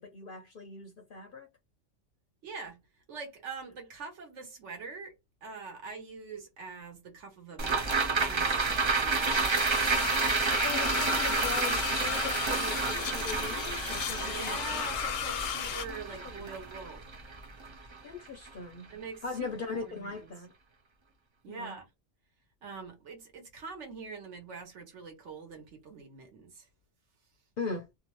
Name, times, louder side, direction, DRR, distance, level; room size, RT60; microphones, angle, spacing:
voice 1, 0.0-1.5 9.9-10.1 10.4-14.9 16.1-16.5 18.0-18.9 19.2-20.5 21.5-21.8 27.6-27.9, left 4 dB, 60° left, 0.6 m, -40 dB
voice 2, 2.4-2.8 3.1-5.1 5.4-9.6 14.0-17.1 18.9-20.3 21.4-21.9 22.6-26.7, right 5 dB, 70° right, 1.3 m, -44 dB
sound 1, 7.6-18.1 18.5-18.6, right 4 dB, 50° right, 0.3 m, -30 dB
sound 2, 9.3-15.8, left 9 dB, 85° left, 0.9 m, -35 dB
2.7 x 2.1 x 3.0 m
omnidirectional pair, 1.3 m